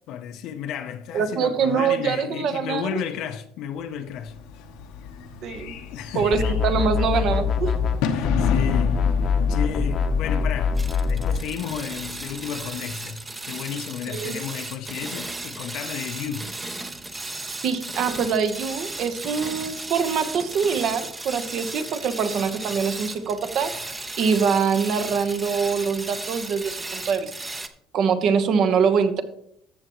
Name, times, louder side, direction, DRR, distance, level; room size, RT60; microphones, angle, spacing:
voice 1, 0.1-4.4 5.9-6.5 8.1-16.5, left 9 dB, 65° left, 0.7 m, -33 dB
voice 2, 1.1-2.8 5.4-5.7 6.1-7.7 14.1-14.3 17.6-23.7 24.2-27.3 27.9-29.2, right 6 dB, 50° right, 1.0 m, -24 dB
Bird / Fireworks, 4.0-13.2, left 6 dB, 80° left, 1.0 m, -33 dB
sound 1, 6.3-8.0 8.2-11.4, left 6 dB, 35° left, 0.9 m, -23 dB
sound 2, 10.8-27.7, right 2 dB, 15° right, 0.7 m, -35 dB
14.0 x 6.9 x 3.1 m
cardioid pair, 130°, 0 cm